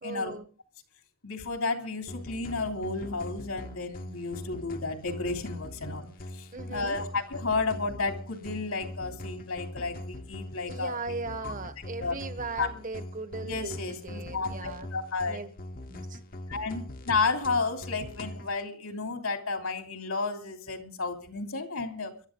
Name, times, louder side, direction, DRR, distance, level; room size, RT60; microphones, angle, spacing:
voice 1, 0.0-0.4 6.5-7.0 10.7-14.9 15.3-15.5 15.9-16.2, right 3 dB, 40° right, 1.4 m, -38 dB
voice 2, 1.2-6.1 6.3-11.0 11.4-11.5 12.0-12.1 12.6-12.7 13.4-15.4 16.5-22.1, left 4 dB, 80° left, 3.0 m, -32 dB
sound 1, 2.1-18.5, left 1 dB, 40° left, 1.0 m, -42 dB
23.5 x 12.0 x 3.9 m
head